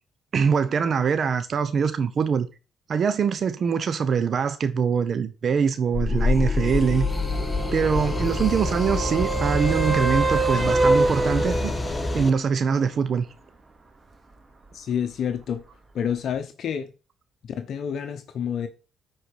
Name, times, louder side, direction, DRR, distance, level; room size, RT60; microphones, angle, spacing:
voice 1, 0.3-2.5 2.9-7.1 7.7-11.7 12.1-13.2, right 6 dB, 50° right, 0.9 m, -23 dB
sound 1, 5.9-12.3, left 3 dB, 25° left, 1.0 m, -26 dB
sound 2, 6.6-12.2 16.3-16.4, right 3 dB, 30° right, 2.3 m, -26 dB
voice 2, 14.7-15.6 15.9-16.9 17.4-18.7, left 8 dB, 65° left, 1.0 m, -28 dB
10.5 x 4.6 x 4.9 m
cardioid pair, 90°, 0 cm